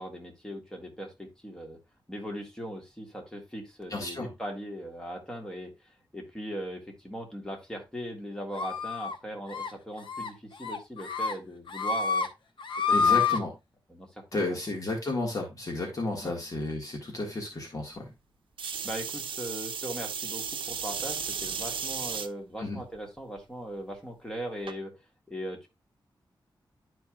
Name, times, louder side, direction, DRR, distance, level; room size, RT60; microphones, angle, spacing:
voice 1, 0.0-1.8 2.1-12.3 12.9-13.4 13.9-14.2 14.5-14.6 16.2-16.3 18.8-24.9 25.3-25.7, equal, 5° left, 1 dB, 1.8 m, -39 dB
voice 2, 3.9-4.3 12.9-13.5 14.3-18.1 22.6-22.8, left 2 dB, 45° left, 0 dB, 1.6 m, -32 dB
sound 1, 8.6-9.2 9.5-9.7 10.0-10.3 10.6-11.3 11.7-12.3 12.6-13.4, left 5 dB, 80° left, 0.9 m, -27 dB
sound 2, 18.6-22.3 22.9-23.4 24.7-24.8, right 6 dB, 90° right, 0.6 m, -35 dB
11.0 x 4.6 x 2.3 m, 0.22 s
wide cardioid pair, 125°, 8 cm